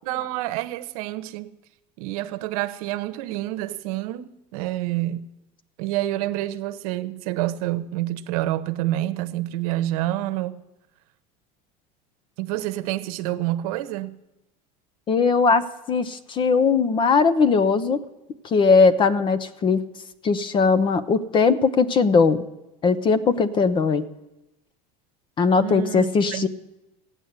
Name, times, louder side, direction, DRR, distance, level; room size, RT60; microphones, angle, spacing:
voice 1, 0.0-1.6 2.0-5.2 5.8-10.6 12.4-14.1 25.6-26.5, right 15 dB, 75° right, 0.9 m, -28 dB
voice 2, 15.1-15.6 15.9-18.0 18.5-19.8 20.2-22.5 22.8-24.0 25.4-26.5, left 4 dB, 25° left, 0.7 m, -19 dB
15.5 x 9.0 x 8.0 m
cardioid pair, 150°, 19 cm